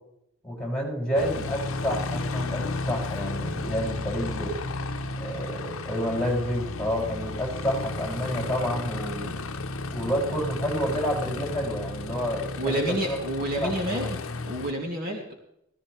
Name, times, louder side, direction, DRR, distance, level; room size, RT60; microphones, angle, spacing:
voice 1, 0.4-4.5 5.2-9.3 9.9-13.2 13.5-14.1, equal, 5° left, -3 dB, 6.8 m, -29 dB
Aircraft, 1.1-14.7, left 3 dB, 80° left, 0.8 m, -33 dB
voice 2, 12.6-15.3, right 1 dB, 45° right, -1 dB, 2.7 m, -30 dB
17.0 x 15.5 x 3.2 m, 0.77 s
head